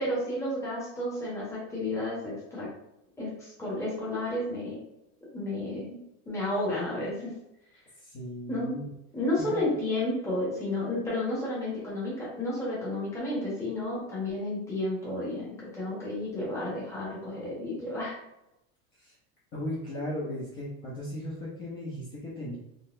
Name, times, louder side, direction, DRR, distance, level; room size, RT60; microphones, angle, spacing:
voice 1, 0.0-2.7 3.2-4.8 5.3-6.0 6.2-7.3 8.5-8.7 9.1-18.2, left 1 dB, 5° left, -7 dB, 1.0 m, -32 dB
voice 2, 8.0-8.9 9.5-9.8 19.0-19.1 19.5-22.6, left 1 dB, 25° left, -7 dB, 0.8 m, -36 dB
4.0 x 3.2 x 2.5 m, 0.86 s
cardioid pair, 175°, 41 cm